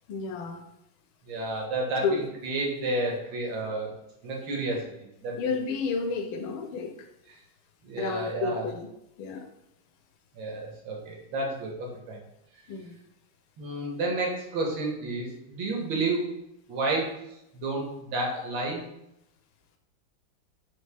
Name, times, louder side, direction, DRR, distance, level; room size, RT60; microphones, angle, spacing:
voice 1, 0.1-0.7 2.0-2.3 5.3-7.1 8.0-8.9 9.2-9.5 12.7-13.0, left 5 dB, 85° left, 5 dB, 1.4 m, -31 dB
voice 2, 1.3-2.0 2.4-3.9 4.2-4.8 5.2-5.4 7.8-8.6 10.3-12.2 13.6-16.2 16.7-17.1 17.5-18.8, right 2 dB, 75° right, -1 dB, 1.7 m, -30 dB
4.2 x 2.8 x 3.3 m, 0.84 s
omnidirectional pair, 2.2 m